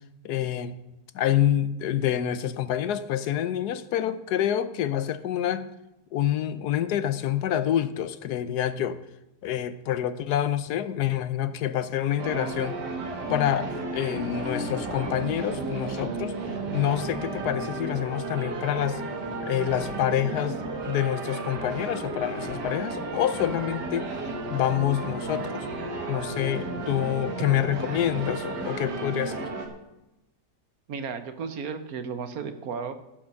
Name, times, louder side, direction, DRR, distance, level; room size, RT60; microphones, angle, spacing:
voice 1, 0.2-0.7 1.1-5.7 6.1-9.0 9.4-12.8 13.3-16.3 16.7-19.0 19.4-24.1 24.5-25.6 26.1-29.5, left 11 dB, 75° left, 13 dB, 1.2 m, -27 dB
sound 1, 12.2-29.7, right 3 dB, 80° right, 2.1 m, -33 dB
voice 2, 30.9-32.9, right 6 dB, 65° right, 10 dB, 1.3 m, -34 dB
15.0 x 5.8 x 6.5 m, 0.93 s
omnidirectional pair, 1.8 m